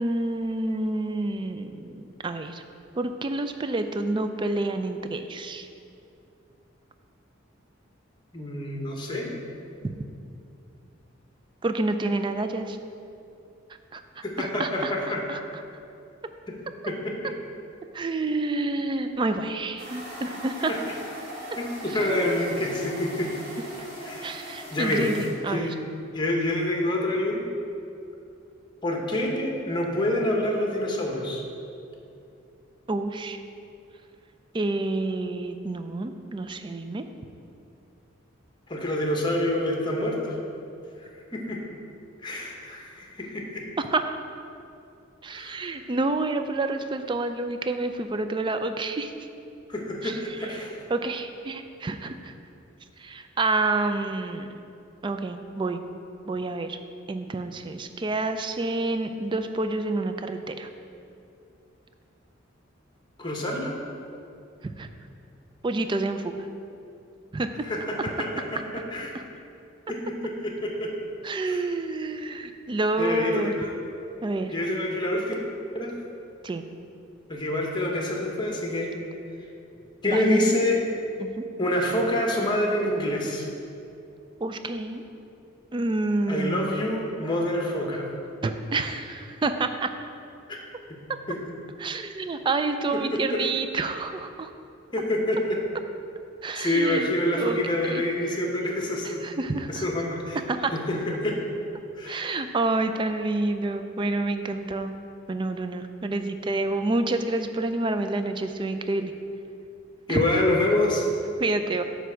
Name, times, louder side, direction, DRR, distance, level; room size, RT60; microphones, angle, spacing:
voice 1, 0.0-2.6 3.0-5.7 11.6-12.8 13.9-14.0 14.4-15.4 17.9-20.7 22.1-22.2 24.2-25.7 32.9-33.4 34.5-37.0 43.8-44.0 45.2-49.1 50.0-50.4 50.9-52.3 53.0-54.5 55.0-55.8 56.3-56.8 57.1-60.7 64.6-64.9 65.6-66.3 67.3-67.7 69.1-69.2 71.2-73.5 74.2-74.5 76.4-76.6 80.1-80.5 81.2-81.4 84.4-85.0 85.7-86.7 88.4-89.9 91.8-94.5 96.4-98.0 99.0-99.9 100.5-100.7 102.1-104.9 105.3-109.1 110.1-110.4 111.4-111.8, right 2 dB, 25° right, 8 dB, 0.3 m, -28 dB
voice 2, 8.3-9.4 14.2-15.2 16.9-17.1 20.7-21.0 21.6-23.3 24.0-24.3 24.7-25.1 25.5-25.7 26.1-27.4 28.8-31.4 38.7-40.4 41.3-41.6 42.2-43.4 45.3-45.6 49.7-50.8 63.2-63.7 67.7-68.3 68.7-69.2 69.9-70.9 71.4-71.6 73.0-73.7 74.5-75.3 75.7-75.9 77.3-78.9 80.0-80.8 81.6-83.5 86.3-88.0 90.5-90.6 90.9-91.0 91.3-91.4 93.1-93.4 94.9-95.6 96.6-99.3 99.7-100.4 100.7-101.4 101.9-102.2 110.1-111.1, left 1 dB, 25° left, -1 dB, 1.0 m, -27 dB
sound 1, 19.8-25.3, right 1 dB, 60° right, 1.9 m, -40 dB
9.3 x 3.4 x 6.2 m, 2.6 s
head